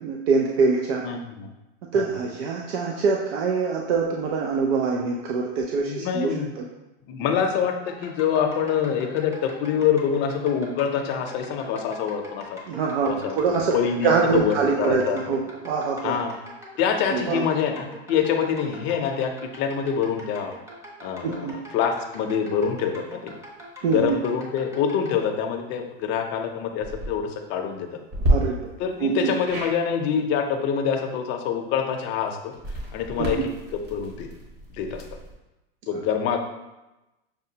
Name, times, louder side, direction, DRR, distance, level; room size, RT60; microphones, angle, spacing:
voice 1, 0.0-1.1 1.9-6.6 12.7-16.1 17.1-17.4 21.2-21.5 23.8-24.2 28.3-28.6 29.0-29.3 33.2-33.5, right 5 dB, 85° right, 0 dB, 0.6 m, -24 dB
voice 2, 1.0-1.5 1.9-2.0 5.8-6.5 7.1-12.6 13.0-15.2 16.0-16.3 16.8-20.5 21.0-23.3 23.9-27.9 28.8-32.5 32.9-33.4 33.9-34.3 34.7-35.0 35.9-36.4, left 7 dB, 40° left, 3 dB, 0.5 m, -25 dB
sound 1, 7.9-25.2, left 1 dB, 10° right, 0.6 m, -43 dB
sound 2, 26.7-27.1 28.1-28.3 29.4-29.8 32.5-35.3, right 1 dB, 30° right, 1.1 m, -29 dB
6.0 x 2.2 x 2.7 m, 0.99 s
supercardioid pair, 140°, 30 cm